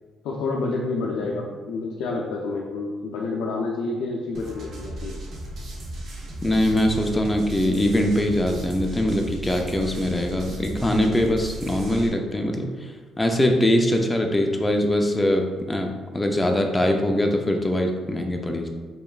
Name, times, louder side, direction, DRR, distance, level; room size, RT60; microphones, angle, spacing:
voice 1, 0.2-5.2, left 3 dB, 90° left, -2 dB, 0.4 m, -28 dB
sound 1, 4.3-12.1, right 1 dB, 65° right, 0.8 m, -36 dB
voice 2, 6.4-18.7, left 1 dB, 15° left, 3 dB, 0.5 m, -22 dB
4.8 x 3.1 x 2.4 m, 1.4 s
cardioid pair, 90°, 0 cm